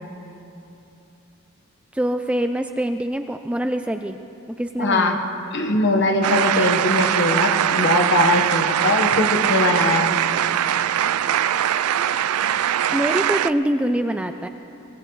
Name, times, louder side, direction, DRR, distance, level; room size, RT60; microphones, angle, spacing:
voice 1, 1.9-4.2 4.5-5.2 12.9-14.5, right 1 dB, 5° right, 7 dB, 0.3 m, -24 dB
voice 2, 4.8-5.2 5.5-10.2, left 2 dB, 55° left, 3 dB, 1.3 m, -21 dB
sound 1, 6.2-13.5, right 10 dB, 90° right, 0.4 m, -21 dB
23.0 x 17.5 x 3.2 m, 2.9 s
head